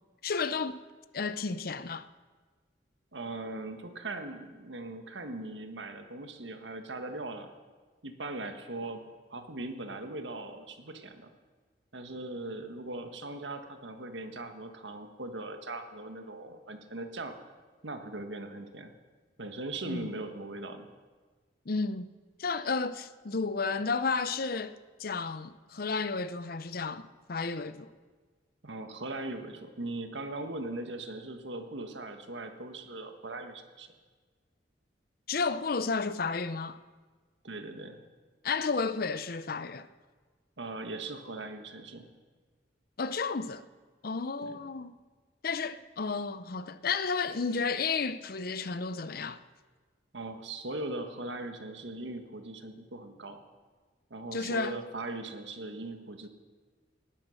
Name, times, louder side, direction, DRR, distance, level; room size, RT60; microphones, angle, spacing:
voice 1, 0.2-0.8 1.1-2.1 19.9-20.1 21.7-22.1 22.4-27.9 35.3-36.8 38.4-39.9 43.0-43.6 44.0-45.0 45.4-49.4 54.3-54.8, left 4 dB, 55° left, 0.6 m, -32 dB
voice 2, 3.1-7.5 8.0-11.3 11.9-17.3 17.8-18.9 19.4-20.9 28.6-33.9 37.4-38.0 40.6-42.1 44.4-44.6 50.1-53.4 54.1-56.3, right 2 dB, 80° right, 1.6 m, -39 dB
19.0 x 11.0 x 6.4 m
head